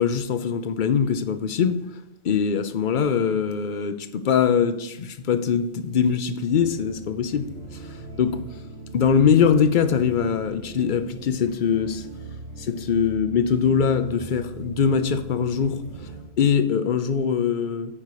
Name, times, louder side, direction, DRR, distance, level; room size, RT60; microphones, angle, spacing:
voice 1, 0.0-1.8 2.2-7.5 8.2-8.4 8.9-12.0 12.6-15.8 16.4-17.9, left 7 dB, 55° left, 0.7 m, -22 dB
sound 1, 6.5-16.2, right 4 dB, 90° right, 2.2 m, -41 dB
8.6 x 5.5 x 4.8 m
omnidirectional pair, 1.1 m